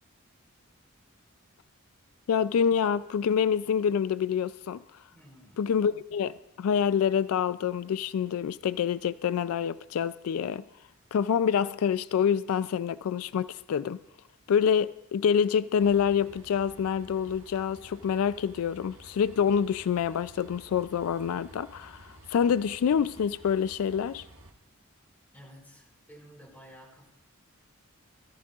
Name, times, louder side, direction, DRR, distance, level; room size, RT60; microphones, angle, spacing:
voice 1, 2.3-4.8 5.6-10.6 11.1-14.0 14.5-24.2, left 7 dB, 90° left, 0.3 m, -27 dB
voice 2, 5.1-5.6 25.3-27.1, equal, 10° left, 5.2 m, -52 dB
Train, 15.7-24.5, right 1 dB, 70° right, 1.5 m, -53 dB
20.5 x 14.0 x 2.4 m
head